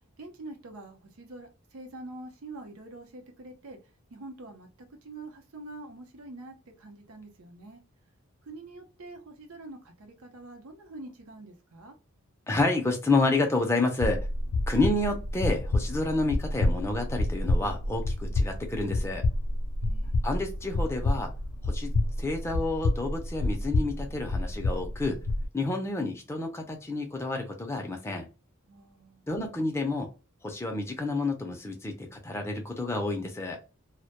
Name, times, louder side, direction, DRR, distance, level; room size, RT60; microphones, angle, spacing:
voice 1, 0.2-3.8 4.1-7.8 8.4-11.9 19.8-20.3 28.7-29.2, right 2 dB, 80° right, 0.6 m, -45 dB
voice 2, 12.5-14.3 14.7-19.2 20.2-21.3 21.6-21.9 22.2-25.2 25.5-28.3 29.3-30.1 30.4-33.6, left 2 dB, 10° left, 0.4 m, -29 dB
sound 1, 14.0-25.5, left 2 dB, 75° left, 0.4 m, -29 dB
2.1 x 2.1 x 2.8 m
head